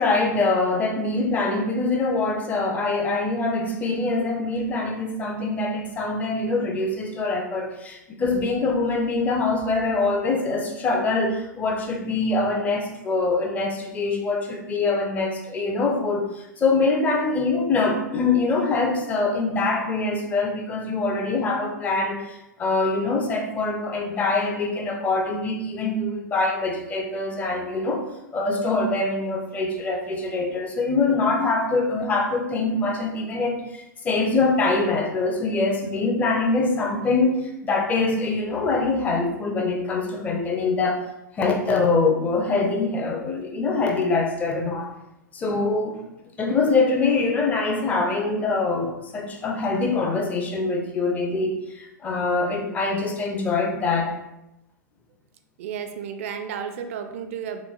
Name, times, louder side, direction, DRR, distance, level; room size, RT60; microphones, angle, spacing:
voice 1, 0.0-28.0 28.3-41.1 41.3-44.9 45.3-46.0 46.4-54.2, left 3 dB, 15° left, 1 dB, 0.5 m, -24 dB
voice 2, 55.6-57.6, right 7 dB, 45° right, 7 dB, 0.4 m, -32 dB
3.4 x 2.9 x 2.4 m, 0.90 s
figure-of-eight pair, 100°, 10 cm